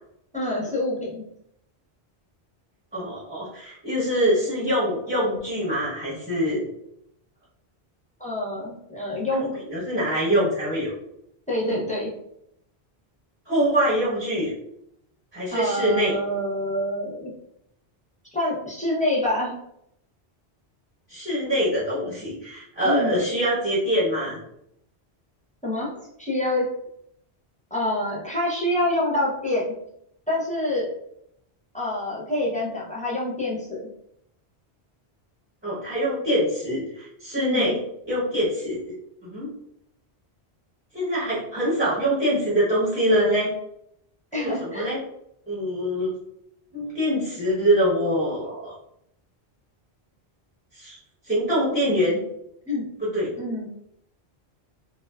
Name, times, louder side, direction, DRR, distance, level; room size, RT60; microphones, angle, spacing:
voice 1, 0.3-1.2 8.2-9.6 11.5-12.1 15.5-17.3 18.3-19.5 22.8-23.2 25.6-26.6 27.7-29.7 30.3-30.9 31.7-33.9 37.4-37.8 44.3-44.9 52.7-52.8 53.4-53.7, left 1 dB, 10° left, -6 dB, 0.5 m, -26 dB
voice 2, 2.9-6.6 9.7-10.9 11.6-11.8 13.5-14.5 15.3-16.2 21.1-24.4 35.6-37.8 38.1-38.8 39.2-39.5 40.9-43.5 44.3-45.0 45.5-46.1 46.7-48.7 50.7-51.0 51.3-52.2 53.0-53.3, equal, 10° right, -9 dB, 0.8 m, -24 dB
2.6 x 2.2 x 2.3 m, 0.76 s
omnidirectional pair, 1.1 m